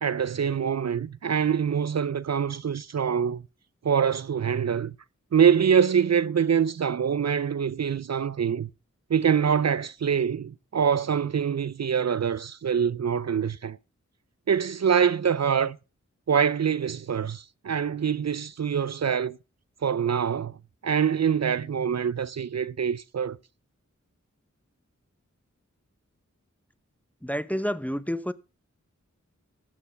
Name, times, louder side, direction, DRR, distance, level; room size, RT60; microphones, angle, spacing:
voice 1, 0.0-3.4 3.8-5.0 5.3-8.7 9.1-13.8 14.5-15.8 16.3-19.4 19.8-20.6 20.8-23.4, right 7 dB, 60° right, 0.5 m, -25 dB
voice 2, 27.2-28.3, equal, 5° left, 0.7 m, -29 dB
13.0 x 6.7 x 5.6 m
wide cardioid pair, 40°, 30 cm